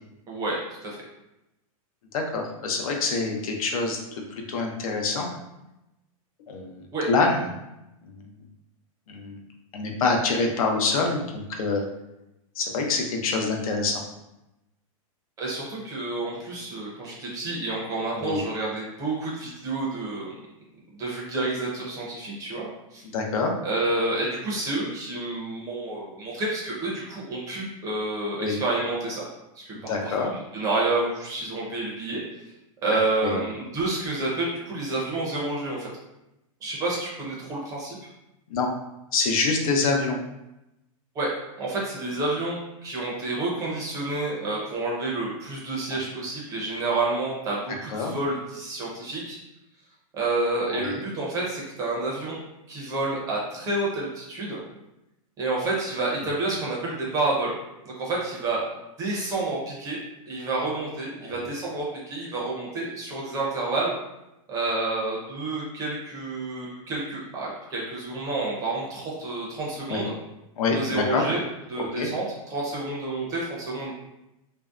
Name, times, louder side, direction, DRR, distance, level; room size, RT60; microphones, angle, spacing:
voice 1, 0.3-1.0 6.9-7.1 15.4-20.3 20.9-23.0 23.6-29.3 29.6-32.2 32.8-35.9 36.6-38.0 41.1-41.3 41.6-49.4 50.1-52.4 52.7-54.6 55.4-57.6 57.8-58.6 59.0-60.0 60.3-63.9 64.5-70.1 70.7-71.4 71.7-73.9, right 2 dB, 20° right, -4 dB, 0.5 m, -29 dB
voice 2, 2.1-4.0 4.3-5.3 6.5-7.4 8.0-8.3 9.1-9.4 9.7-11.8 12.6-14.0 18.1-18.4 23.0-23.5 28.4-28.6 29.7-30.3 33.2-33.4 38.5-38.7 39.1-40.2 45.9-46.0 47.9-48.1 50.7-51.0 61.2-61.4 69.9-70.0 70.6-71.2 71.8-72.1, left 4 dB, 75° left, 2 dB, 0.5 m, -26 dB
2.6 x 2.1 x 2.3 m, 0.91 s
supercardioid pair, 160°, 18 cm